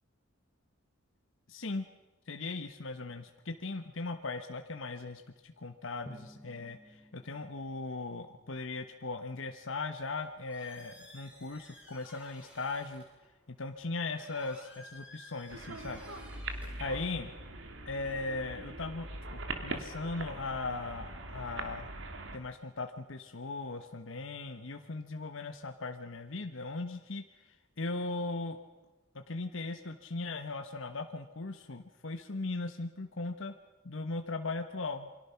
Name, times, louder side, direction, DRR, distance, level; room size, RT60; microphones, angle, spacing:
voice 1, 1.5-1.9 2.3-13.0 13.5-16.0 16.8-17.3 17.8-21.9 22.3-28.6 29.1-33.5 33.8-35.1, left 3 dB, 70° left, 6 dB, 1.2 m, -38 dB
Drum, 6.1-8.7, equal, 10° left, 1.0 m, -54 dB
Squeak, 10.0-17.5, left 1 dB, 5° right, 6.8 m, -56 dB
sound 1, 15.5-22.4, right 2 dB, 65° right, 2.6 m, -42 dB
28.5 x 24.0 x 5.8 m, 1.1 s
head